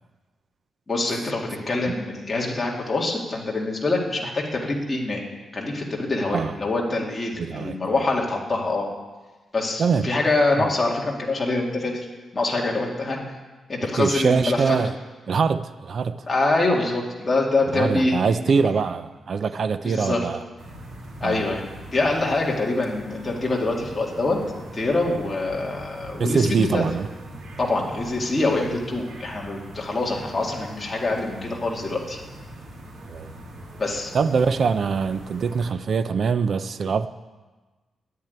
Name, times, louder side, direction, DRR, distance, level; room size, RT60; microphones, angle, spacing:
voice 1, 0.9-5.3 5.5-8.9 9.5-12.0 12.3-13.2 13.7-14.8 16.3-18.2 19.8-20.2 21.2-21.7 21.9-24.4 24.7-26.8 27.6-32.2 33.8-34.1, left 2 dB, 20° left, 2.2 m, -25 dB
voice 2, 7.4-7.8 9.8-10.1 10.6-10.7 13.9-14.9 15.3-16.2 17.7-20.4 21.2-21.4 26.2-27.1 33.1-33.3 34.1-37.1, right 5 dB, 45° right, 0.5 m, -23 dB
sound 1, 20.6-35.7, right 1 dB, 85° right, 2.9 m, -41 dB
10.5 x 9.7 x 9.5 m
wide cardioid pair, 170°, 0 cm